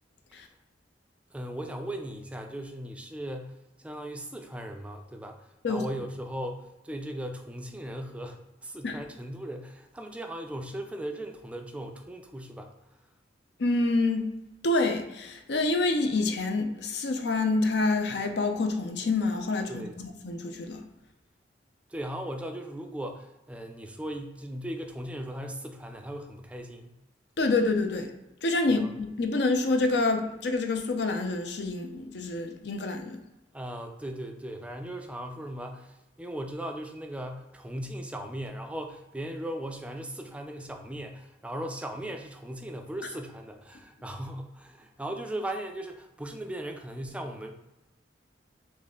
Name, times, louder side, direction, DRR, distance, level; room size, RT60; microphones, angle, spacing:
voice 1, 1.3-12.7 19.7-20.0 21.9-27.0 28.7-28.9 33.5-47.5, right 1 dB, 5° right, 4 dB, 0.4 m, -38 dB
voice 2, 13.6-14.3 14.6-19.8 20.2-20.8 27.4-28.1 28.4-33.2, left 3 dB, 65° left, 6 dB, 0.6 m, -27 dB
4.0 x 3.2 x 3.7 m, 0.96 s
head